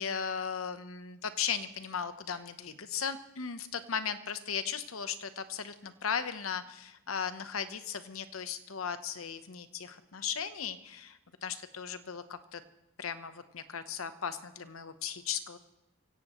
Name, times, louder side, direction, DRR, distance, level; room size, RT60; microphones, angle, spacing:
voice 1, 0.0-12.6 13.0-15.6, left 7 dB, 80° left, 11 dB, 1.0 m, -37 dB
24.0 x 16.5 x 3.1 m, 0.91 s
head